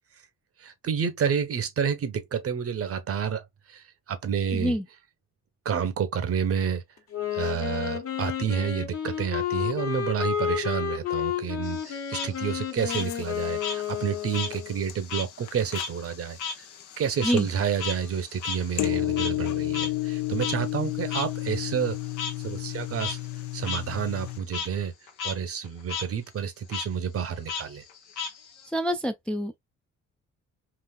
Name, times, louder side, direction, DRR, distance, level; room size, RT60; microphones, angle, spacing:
voice 1, 0.6-4.8 5.6-6.8 7.3-16.7 17.0-22.0 22.4-23.2 23.5-24.9 25.2-27.8, right 7 dB, 50° right, 0.8 m, -29 dB
voice 2, 4.5-4.8 17.2-17.5 28.7-29.6, equal, 5° left, 0.3 m, -26 dB
Wind instrument woodwind instrument, 7.1-14.9, left 9 dB, 50° left, 1.1 m, -31 dB
Frog, 11.6-14.6 14.9-19.5 19.7-19.9 20.4-20.5 21.1-21.2 22.2-22.3 22.8-23.1 23.6-23.8 24.2-24.7 25.1-25.3 25.6-26.1 26.7-26.9 27.5-28.7, left 5 dB, 90° left, 1.0 m, -34 dB
sound 1, 12.8-24.4, left 16 dB, 70° left, 0.5 m, -33 dB
3.9 x 2.4 x 2.2 m
cardioid pair, 90°, 30 cm